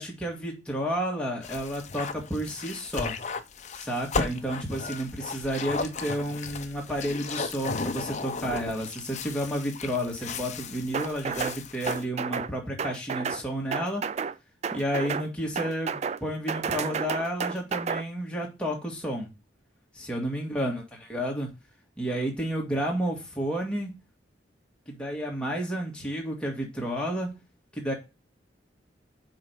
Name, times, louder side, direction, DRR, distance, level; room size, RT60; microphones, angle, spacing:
voice 1, 0.0-3.2 3.8-14.0 14.7-19.3 19.9-21.5 22.0-23.9 24.9-27.3 27.7-27.9, equal, 5° left, -1 dB, 1.9 m, -31 dB
sound 1, 1.4-12.0, left 4 dB, 40° left, 0.6 m, -35 dB
sound 2, 10.9-11.6 11.9-12.5 12.8-13.4 13.7-14.3 14.6-15.3 15.6-16.2 16.5-18.0, right 6 dB, 35° right, 0.3 m, -31 dB
5.6 x 4.6 x 5.4 m, 0.26 s
head